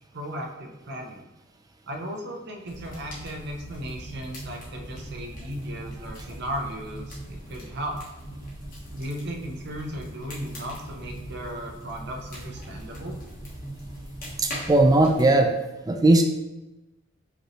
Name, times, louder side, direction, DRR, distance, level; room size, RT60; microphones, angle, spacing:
voice 1, 0.1-1.3 1.9-8.0 8.9-13.2, equal, 50° right, 2 dB, 0.7 m, -36 dB
sound 1, 2.7-15.3, right 1 dB, 40° left, 1.2 m, -40 dB
voice 2, 14.4-15.5 15.9-16.2, right 2 dB, 15° right, 5 dB, 0.3 m, -18 dB
5.0 x 3.2 x 3.0 m, 1.0 s
head